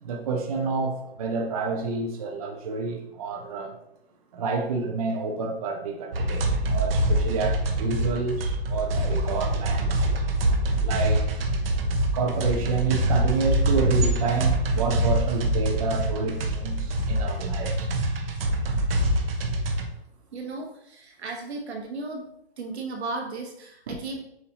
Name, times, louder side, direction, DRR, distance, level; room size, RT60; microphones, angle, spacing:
voice 1, 0.0-3.8 4.3-9.9 10.8-11.3 12.1-17.9 23.9-24.0, right 4 dB, 35° right, 0.5 m, -29 dB
sound 1, 6.1-19.8, right 1 dB, 65° right, 0.8 m, -25 dB
voice 2, 20.3-22.3 22.6-24.2, right 3 dB, 85° right, 1.2 m, -35 dB
6.9 x 2.5 x 2.9 m
hypercardioid pair, 160°, 32 cm